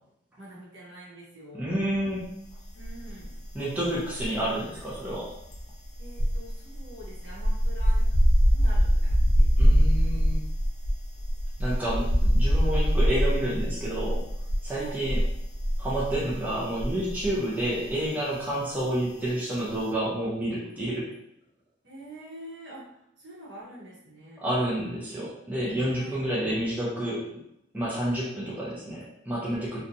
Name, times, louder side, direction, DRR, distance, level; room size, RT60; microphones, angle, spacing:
voice 1, 0.4-1.6 2.7-3.3 6.0-8.1 8.5-9.5 10.0-10.2 14.7-15.0 21.8-24.4 25.9-26.2, right 1 dB, 60° right, -6 dB, 0.9 m, -45 dB
voice 2, 1.6-2.3 3.5-5.3 9.6-10.4 11.6-14.2 14.6-15.2 15.8-21.1 24.4-27.3 27.7-29.8, right 1 dB, 10° right, -7 dB, 0.5 m, -29 dB
sound 1, 2.8-3.6 3.8-17.4 17.6-17.9, equal, 70° left, 0.6 m, -24 dB
2.6 x 2.2 x 2.6 m, 0.80 s
head